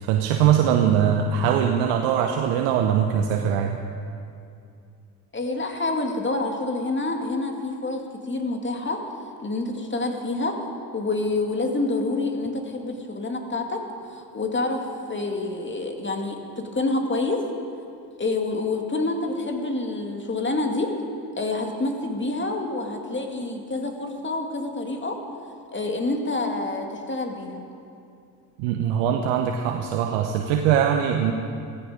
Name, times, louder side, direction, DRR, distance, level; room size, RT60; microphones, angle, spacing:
voice 1, 0.0-3.8 28.6-31.3, right 8 dB, 70° right, 4 dB, 1.1 m, -21 dB
voice 2, 5.3-9.0 9.4-10.6 10.9-13.8 14.1-14.8 15.1-17.4 18.2-20.9 21.4-25.2 25.7-27.6, left 2 dB, 20° left, 3 dB, 2.4 m, -27 dB
16.0 x 15.5 x 5.2 m, 2.5 s
hypercardioid pair, 60°, 50 cm